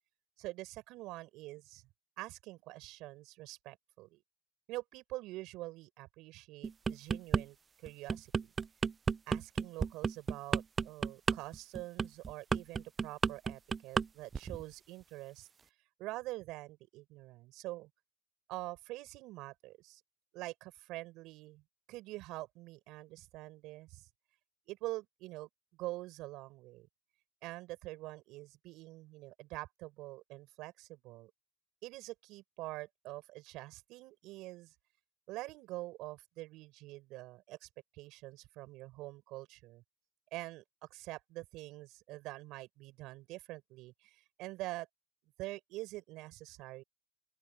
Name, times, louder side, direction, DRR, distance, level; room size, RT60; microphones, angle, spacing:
voice 1, 0.4-1.8 2.2-4.2 4.7-7.6 7.8-8.5 9.3-15.5 16.0-17.9 18.5-20.0 20.3-21.6 21.9-24.1 24.7-25.5 25.8-26.9 27.4-31.3 31.8-34.7 35.3-37.7 37.9-39.8 40.3-40.6 40.9-44.9 45.4-46.8, right 19 dB, 80° right, 6.6 m, -45 dB
sound 1, 6.6-7.4 7.9-14.1 14.3-14.6, right 5 dB, 40° right, 0.3 m, -32 dB
open air
supercardioid pair, 70°, 0 cm